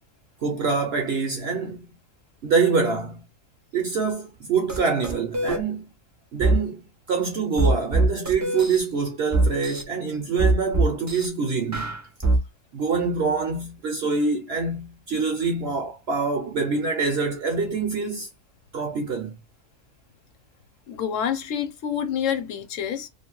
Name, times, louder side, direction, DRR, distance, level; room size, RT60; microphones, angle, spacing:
voice 1, 0.4-1.9 2.4-3.2 3.7-5.9 6.3-6.8 7.1-11.9 12.7-18.3 18.7-19.3, right 4 dB, 65° right, 0.6 m, -25 dB
sound 1, 4.7-4.8 5.0-5.6 6.4-6.6 7.6-8.8 9.3-9.8 10.4-11.3 11.7-12.4, right 2 dB, 25° right, 0.3 m, -21 dB
voice 2, 20.9-23.1, left 8 dB, 70° left, 0.9 m, -27 dB
2.5 x 2.1 x 2.9 m
omnidirectional pair, 1.5 m